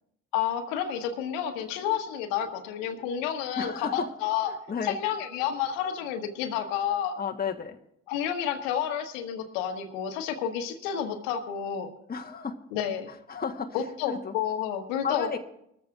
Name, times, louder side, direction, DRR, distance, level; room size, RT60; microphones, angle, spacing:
voice 1, 0.3-4.5 4.8-7.1 8.1-11.9 12.7-13.1 13.7-15.4, left 9 dB, 70° left, 5 dB, 1.4 m, -30 dB
voice 2, 3.6-4.1 4.5-5.0 7.2-7.8 12.1-12.6 13.1-13.8 14.1-14.3 15.0-15.4, left 6 dB, 25° left, 3 dB, 1.3 m, -32 dB
21.5 x 14.0 x 2.5 m, 0.77 s
figure-of-eight pair, 50°, 40 cm